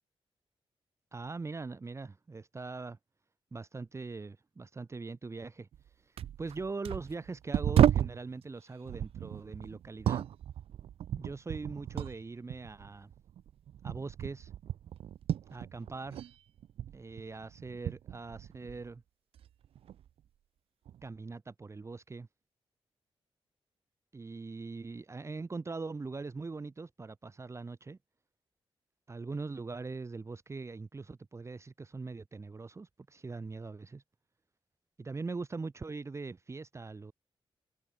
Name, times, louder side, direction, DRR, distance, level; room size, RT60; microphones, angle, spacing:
voice 1, 1.1-3.0 3.5-5.7 6.4-10.2 11.1-13.1 13.8-14.5 15.5-16.3 16.9-19.0 21.0-22.3 24.1-28.0 29.1-34.0 35.0-37.1, right 3 dB, 30° right, 0.8 m, -41 dB
sound 1, 5.7-5.9 6.2-8.2 8.9-12.2 12.5-16.3 16.6-18.9 19.4-20.1 20.9-21.0, right 10 dB, 80° right, 0.4 m, -33 dB
cardioid pair, 95°, 10 cm